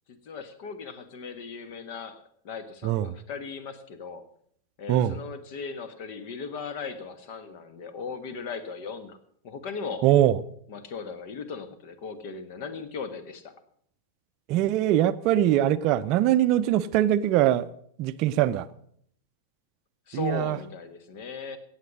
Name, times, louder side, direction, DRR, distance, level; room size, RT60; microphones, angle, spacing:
voice 1, 0.1-2.2 2.4-4.2 4.8-9.2 9.4-10.1 10.7-13.5 20.1-21.6, left 5 dB, 45° left, 1.4 m, -37 dB
voice 2, 4.9-5.2 10.0-10.4 14.5-17.7 18.0-18.7 20.1-20.6, right 12 dB, 40° right, 0.5 m, -22 dB
17.5 x 7.3 x 6.2 m
figure-of-eight pair, 90°, 0 cm